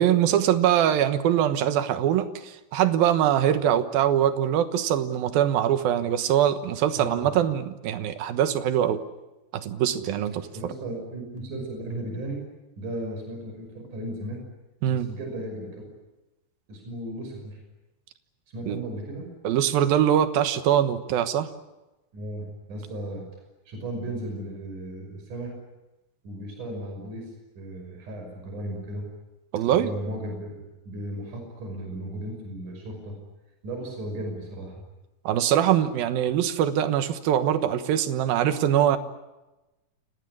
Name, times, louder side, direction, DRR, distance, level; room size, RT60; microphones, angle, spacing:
voice 1, 0.0-9.0 9.5-10.5 14.8-15.1 18.7-18.8 19.4-21.5 29.5-29.9 35.2-39.0, right 10 dB, 75° right, 10 dB, 3.1 m, -23 dB
voice 2, 7.0-7.3 10.5-12.4 12.8-14.4 14.9-15.9 16.7-17.6 18.5-19.3 22.1-23.2 23.7-25.5 26.2-27.3 27.6-29.1 29.8-33.2 33.6-34.7, right 1 dB, 55° right, 3 dB, 7.3 m, -35 dB
29.0 x 19.0 x 9.8 m, 1.0 s
omnidirectional pair, 4.3 m